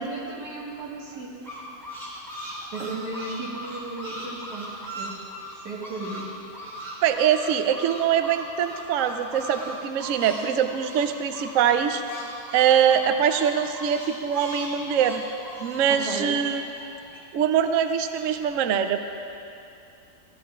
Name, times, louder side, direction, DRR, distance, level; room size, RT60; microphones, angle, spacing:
voice 1, 0.0-1.4 2.7-5.2 5.6-6.3 15.9-16.3, right 2 dB, 90° right, -3 dB, 2.1 m, -35 dB
sound 1, 1.1-6.2 6.5-10.4 10.7-17.2 17.6-18.2, equal, 25° right, 3.1 m, -38 dB
voice 2, 7.0-12.0 12.5-15.2 15.6-16.6 16.9-17.0 17.3-19.0, right 8 dB, 65° right, 8 dB, 0.8 m, -23 dB
14.5 x 14.0 x 2.4 m, 2.6 s
omnidirectional pair, 1.7 m